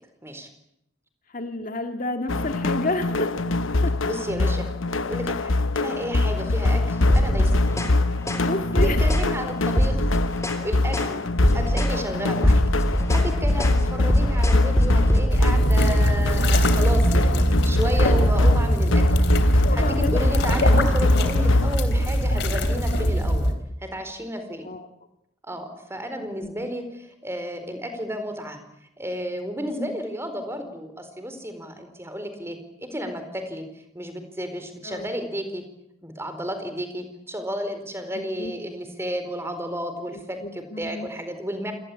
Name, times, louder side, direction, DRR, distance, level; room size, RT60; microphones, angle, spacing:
voice 1, 1.3-3.3 3.8-3.9 8.4-9.2 18.0-18.1 19.6-20.3 24.6-24.9 26.2-26.7 29.8-30.0 34.8-35.1 38.1-38.6 40.1-41.1, left 2 dB, 45° left, 6 dB, 1.9 m, -30 dB
sound 1, 2.3-21.8, left 2 dB, 85° left, 1.0 m, -24 dB
voice 2, 4.0-4.7 5.0-7.8 9.0-10.0 10.6-11.2 11.5-12.6 12.9-24.7 25.4-28.6 29.0-33.6 33.9-35.6 36.0-41.7, equal, 15° right, 8 dB, 4.4 m, -32 dB
sound 2, 7.0-8.0 8.2-8.5 8.8-9.3 9.7-10.6 10.9-11.1 11.4-12.0 12.3-15.6, equal, 15° left, 3.5 m, -23 dB
sound 3, 15.3-23.5, equal, 60° left, 3.6 m, -21 dB
28.0 x 19.0 x 8.7 m, 0.78 s
head